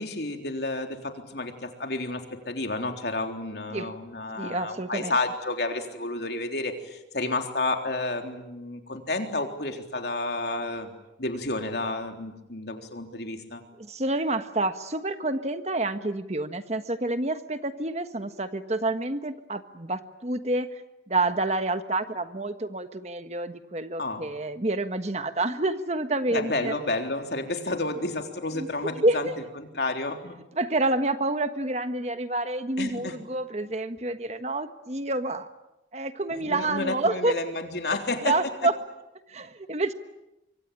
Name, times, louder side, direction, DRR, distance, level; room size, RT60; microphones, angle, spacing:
voice 1, 0.0-10.9 11.2-13.6 24.0-24.3 26.3-29.3 29.6-30.4 32.8-33.2 36.3-38.4, left 2 dB, 65° left, 4 dB, 3.7 m, -31 dB
voice 2, 4.4-5.1 13.8-20.8 21.1-26.7 28.5-28.7 29.0-29.4 30.5-35.5 35.9-37.4 37.9-38.0 38.2-38.7 39.3-39.9, right 2 dB, 35° right, 9 dB, 1.4 m, -28 dB
26.0 x 24.5 x 8.8 m, 0.94 s
head